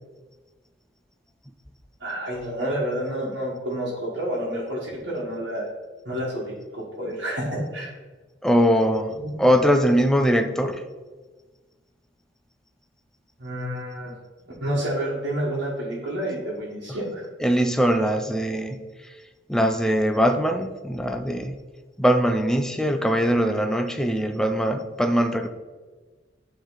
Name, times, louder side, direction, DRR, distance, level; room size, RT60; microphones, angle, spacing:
voice 1, 2.0-5.7 6.0-7.9 9.2-9.4 13.4-14.1 14.6-17.2, right 1 dB, 65° right, -8 dB, 1.5 m, -29 dB
voice 2, 8.4-9.1 9.4-10.8 17.4-18.8 19.5-21.6 22.0-25.5, equal, 5° left, 6 dB, 0.4 m, -21 dB
9.7 x 3.3 x 3.9 m, 1.3 s
head